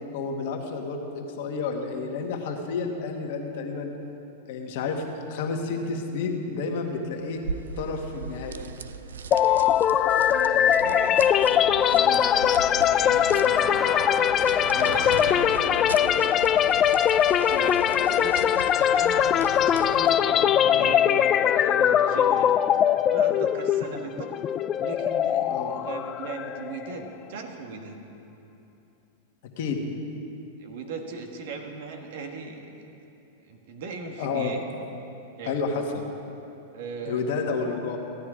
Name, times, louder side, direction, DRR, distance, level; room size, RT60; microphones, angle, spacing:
voice 1, 0.1-3.9 4.5-7.4 7.8-8.7 14.7-15.0 25.5-25.7 29.6-29.8 34.2-34.5 35.4-36.0 37.0-38.0, left 4 dB, 60° left, 3 dB, 1.6 m, -30 dB
sound 1, 6.7-7.7 8.0-21.0, equal, 10° right, 1.9 m, -40 dB
sound 2, 7.4-20.3, right 5 dB, 85° right, 0.5 m, -40 dB
sound 3, 9.3-27.1, left 10 dB, 30° left, 0.3 m, -21 dB
voice 2, 10.3-14.1 14.6-16.9 17.5-22.5 23.1-24.3 24.8-28.0 30.6-32.6 33.5-34.6 35.4-35.6 36.7-37.8, right 4 dB, 65° right, 4 dB, 1.5 m, -39 dB
15.0 x 9.7 x 5.0 m, 2.9 s
hypercardioid pair, 110°, 0 cm